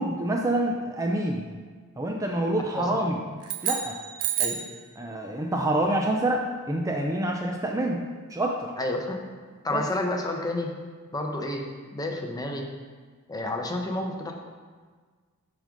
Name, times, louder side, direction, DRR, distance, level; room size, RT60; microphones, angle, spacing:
voice 1, 0.0-1.5 2.0-3.2 3.6-4.0 5.0-8.0 8.3-8.7 9.7-9.8, right 1 dB, 15° right, 1 dB, 0.4 m, -27 dB
sound 1, 3.4-4.8, right 9 dB, 85° right, 0.7 m, -29 dB
voice 2, 8.8-9.2 9.6-10.7 11.1-11.7 11.9-12.7 13.3-14.3, left 1 dB, 20° left, 2 dB, 0.8 m, -30 dB
6.3 x 5.2 x 5.0 m, 1.5 s
head